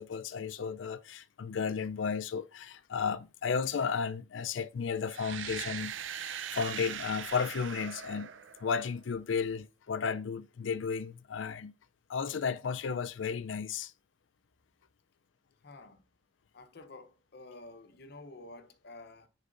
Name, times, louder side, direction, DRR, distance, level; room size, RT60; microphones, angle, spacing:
voice 1, 0.0-8.3 8.6-11.7 12.1-13.9, left 6 dB, 80° left, 0.4 m, -34 dB
sound 1, 5.1-9.0, right 8 dB, 85° right, 0.5 m, -40 dB
voice 2, 15.6-16.0 16.5-19.3, left 2 dB, 60° left, 0.8 m, -50 dB
10.0 x 4.1 x 2.6 m
head